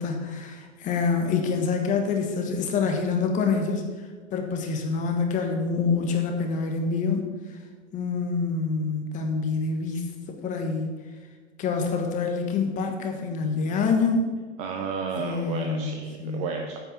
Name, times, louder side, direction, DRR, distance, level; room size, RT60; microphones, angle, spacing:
voice 1, 0.0-3.8 4.3-7.2 7.9-11.0 11.6-14.3 15.2-16.5, left 4 dB, 20° left, 4 dB, 1.3 m, -26 dB
voice 2, 14.6-16.8, right 5 dB, 20° right, 3 dB, 0.5 m, -32 dB
9.4 x 5.5 x 7.3 m, 1.4 s
hypercardioid pair, 145°, 37 cm